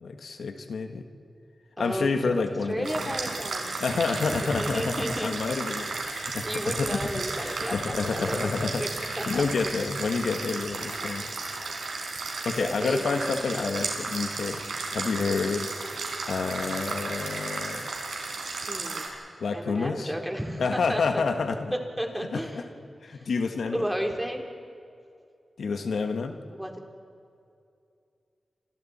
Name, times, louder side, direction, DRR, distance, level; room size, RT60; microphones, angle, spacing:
voice 1, 0.0-1.0 1.8-3.1 3.8-11.3 12.4-14.6 14.9-15.7 16.3-17.9 19.4-20.1 20.6-21.7 22.3-22.6 23.0-23.9 25.6-26.3, left 4 dB, 85° left, 6 dB, 1.5 m, -29 dB
voice 2, 1.8-2.1 2.4-3.8 4.3-5.4 6.0-6.2 6.4-8.9 9.2-9.5 12.6-13.1 18.7-19.1 19.5-21.3 22.0-22.7 23.1-23.3 23.7-24.4 26.5-26.7, equal, 5° right, 2 dB, 3.7 m, -33 dB
sound 1, 2.8-19.1, right 3 dB, 85° right, 4.8 m, -34 dB
30.0 x 27.0 x 4.3 m, 2.5 s
cardioid pair, 60°, 0 cm